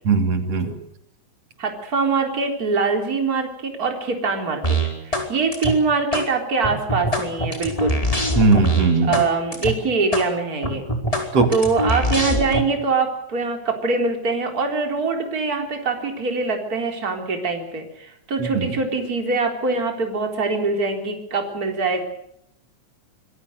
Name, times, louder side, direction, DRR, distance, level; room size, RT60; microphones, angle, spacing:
voice 1, 0.1-0.8 8.3-9.2 11.3-11.5 18.4-18.7, right 3 dB, 55° right, 6 dB, 3.9 m, -19 dB
voice 2, 1.6-4.8 5.0-8.0 9.0-10.8 11.5-22.0, right 4 dB, 30° right, 3 dB, 4.2 m, -23 dB
sound 1, 4.6-5.3 5.5-6.3 6.6-9.3 9.5-9.7 10.1-10.3 10.6-12.6, right 1 dB, 10° left, 4.7 m, -23 dB
26.0 x 22.0 x 6.6 m, 0.75 s
omnidirectional pair, 3.3 m